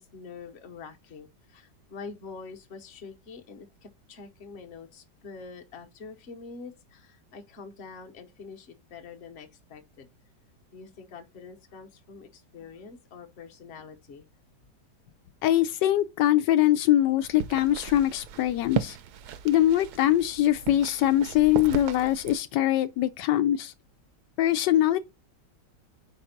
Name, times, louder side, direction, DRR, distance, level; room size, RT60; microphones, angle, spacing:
voice 1, 0.0-10.1 10.7-14.3, left 5 dB, 45° left, 1.1 m, -45 dB
voice 2, 15.4-19.0 19.4-23.7 24.4-25.0, left 13 dB, 85° left, 1.2 m, -23 dB
sound 1, 17.2-22.3, right 9 dB, 75° right, 1.1 m, -36 dB
4.7 x 4.2 x 5.7 m
omnidirectional pair, 1.9 m